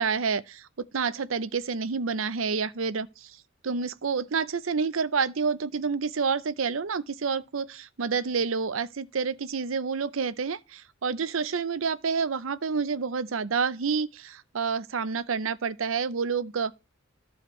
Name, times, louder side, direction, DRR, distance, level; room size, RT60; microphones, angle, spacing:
voice 1, 0.0-3.4 3.6-16.7, right 5 dB, 70° right, 0.7 m, -29 dB
14.0 x 4.8 x 3.1 m
head